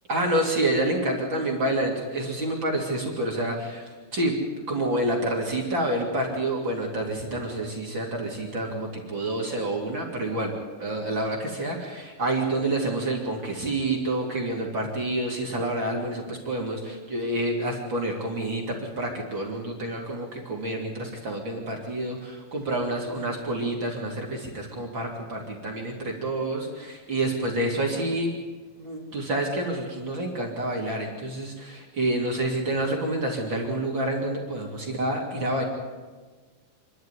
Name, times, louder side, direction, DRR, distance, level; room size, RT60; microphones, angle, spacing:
voice 1, 0.1-4.4 4.7-10.5 10.8-28.4 28.8-35.6, right 1 dB, 35° right, -1 dB, 3.2 m, -28 dB
27.0 x 12.0 x 9.8 m, 1.4 s
omnidirectional pair, 4.3 m